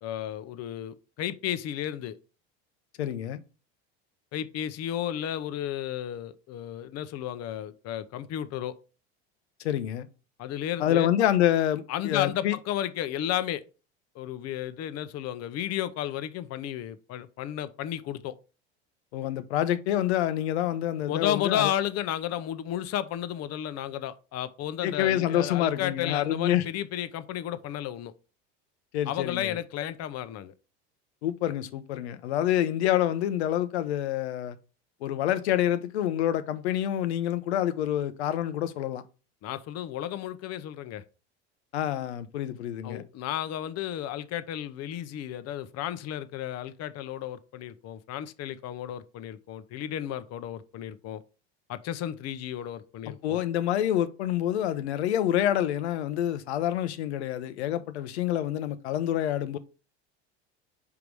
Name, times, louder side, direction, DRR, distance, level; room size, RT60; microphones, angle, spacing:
voice 1, 0.0-2.2 4.3-8.8 10.4-11.1 11.9-13.6 14.1-18.3 21.1-28.1 29.1-30.5 39.4-41.0 42.8-51.2 51.7-53.4, left 11 dB, 50° left, 0.8 m, -33 dB
voice 2, 3.0-3.4 9.6-10.1 10.8-12.6 19.1-21.7 24.8-26.6 28.9-29.6 31.2-34.6 35.0-39.0 41.7-43.0 53.2-59.6, left 11 dB, 90° left, 0.8 m, -27 dB
5.4 x 4.8 x 4.8 m
supercardioid pair, 95°, 32 cm